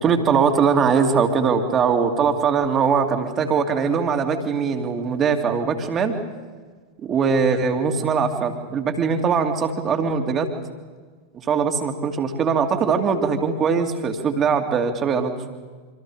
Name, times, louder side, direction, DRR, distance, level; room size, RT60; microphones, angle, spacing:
voice 1, 0.0-6.1 7.0-10.5 11.5-15.3, right 6 dB, 25° right, 6 dB, 2.5 m, -21 dB
27.0 x 25.5 x 4.9 m, 1.5 s
figure-of-eight pair, 90°, 0 cm